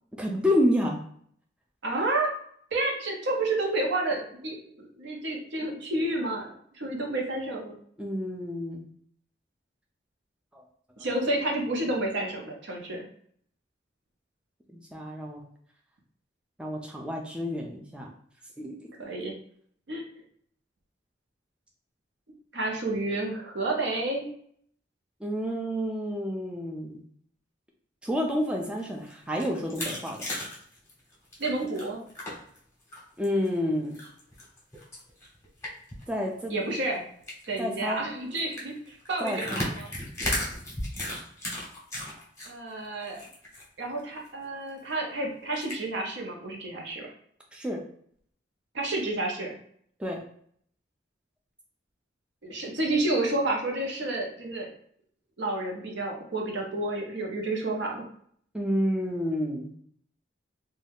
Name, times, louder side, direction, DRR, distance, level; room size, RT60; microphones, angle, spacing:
voice 1, 0.2-1.0 8.0-8.9 10.5-10.6 14.7-15.4 16.6-18.1 18.6-18.9 25.2-27.0 28.0-30.2 33.2-34.0 36.1-36.5 37.6-38.0 39.2-39.6 47.5-47.8 50.0-50.2 58.5-59.7, equal, 5° right, -1 dB, 0.3 m, -29 dB
voice 2, 1.8-2.3 2.7-6.5 6.7-7.7 11.0-13.0 19.0-19.4 19.9-20.0 22.5-24.3 31.4-32.0 36.5-37.0 37.5-39.9 42.4-43.2 43.8-47.1 48.7-49.6 52.4-54.7 55.4-58.0, right 2 dB, 65° right, 0 dB, 0.7 m, -30 dB
sound 1, 28.6-32.6 32.9-33.5 33.9-36.0 36.3-36.4 36.7-36.9 37.2-37.5 38.3-42.5 42.8-43.6 44.0-44.1 44.4-44.5 45.5-45.7, left 1 dB, 15° left, 0.8 m, -35 dB
2.6 x 2.2 x 3.4 m, 0.62 s
head